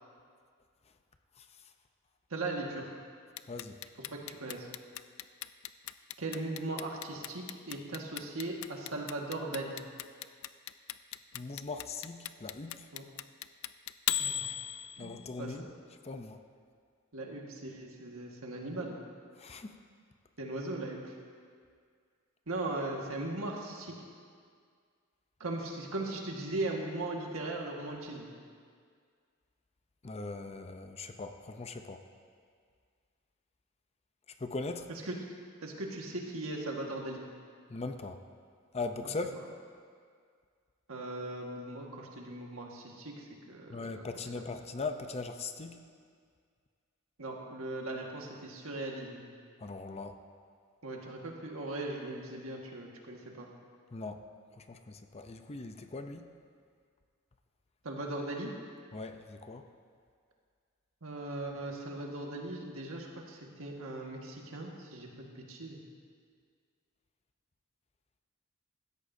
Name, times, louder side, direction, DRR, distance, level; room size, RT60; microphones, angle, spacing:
voice 1, 2.3-2.9 4.1-4.7 6.2-9.8 12.9-13.0 14.2-14.5 15.0-15.7 17.1-19.0 20.4-21.2 22.5-23.9 25.4-28.3 34.9-35.2 35.6-37.2 39.0-39.1 40.9-44.4 47.2-49.3 50.8-53.5 57.8-58.5 61.0-65.8, right 2 dB, 80° right, 0 dB, 1.6 m, -39 dB
Clock, 3.4-15.3, left 12 dB, 80° left, 0.4 m, -37 dB
voice 2, 3.5-3.8 11.3-12.9 15.0-15.7 16.0-16.4 19.4-19.7 30.0-32.0 34.4-34.9 37.7-38.2 38.7-39.3 43.7-45.8 49.6-50.2 53.9-54.2 54.6-56.3 58.9-59.7, left 3 dB, 30° left, 7 dB, 0.6 m, -40 dB
16.5 x 13.5 x 2.7 m, 2.1 s
head